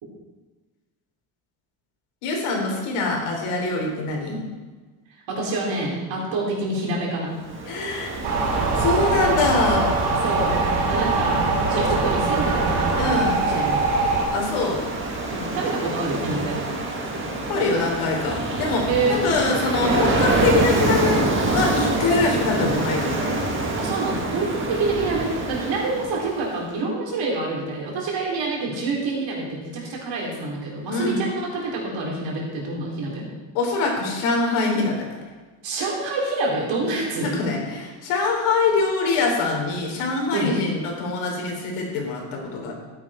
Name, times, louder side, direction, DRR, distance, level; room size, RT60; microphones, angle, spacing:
voice 1, 2.2-4.4 7.7-8.2 8.8-9.9 12.9-13.5 14.3-14.8 17.5-18.8 19.1-21.2 21.5-23.3 30.9-31.3 33.5-35.2 36.9-37.0 37.2-42.7, left 3 dB, 85° left, 0 dB, 3.6 m, -24 dB
voice 2, 5.3-7.4 10.2-10.6 10.9-13.9 15.3-16.6 18.9-19.2 23.8-33.2 35.6-37.3 40.3-40.5, right 3 dB, 60° right, -2 dB, 3.9 m, -27 dB
Ocean, 7.4-26.5, right 2 dB, 25° right, 1.9 m, -27 dB
sound 1, 8.2-14.3, right 3 dB, 90° right, 3.6 m, -22 dB
13.5 x 9.6 x 4.4 m, 1.3 s
cardioid pair, 160°, 50 cm